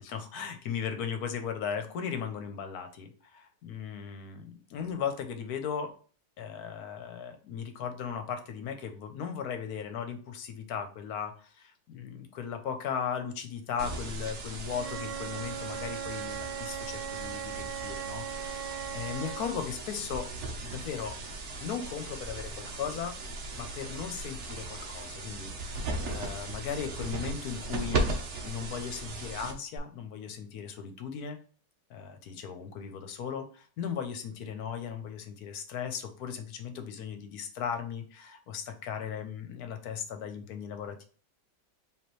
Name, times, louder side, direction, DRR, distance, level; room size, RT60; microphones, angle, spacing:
voice 1, 0.0-5.9 6.4-20.3 20.6-21.2 21.6-23.2 23.6-28.0 28.4-31.4 31.9-41.0, left 7 dB, 65° left, 7 dB, 1.1 m, -37 dB
sound 1, 13.8-29.8, right 2 dB, 50° right, 0.9 m, -37 dB
Wind instrument woodwind instrument, 14.7-19.5, right 9 dB, 80° right, 1.3 m, -39 dB
5.0 x 2.9 x 3.1 m, 0.40 s
omnidirectional pair, 1.9 m